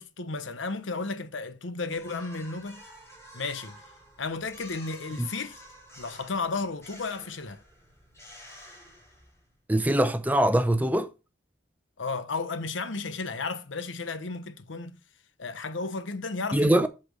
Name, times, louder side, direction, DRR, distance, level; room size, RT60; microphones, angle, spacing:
voice 1, 0.0-2.8 3.3-3.8 4.2-5.6 6.0-7.6 12.0-15.0 15.4-16.9, left 3 dB, 85° left, 0.9 m, -33 dB
sound 1, 1.9-9.5, equal, 15° left, 4.9 m, -50 dB
voice 2, 9.7-11.1 16.5-16.9, right 1 dB, 10° right, 0.6 m, -22 dB
8.1 x 4.3 x 6.4 m
head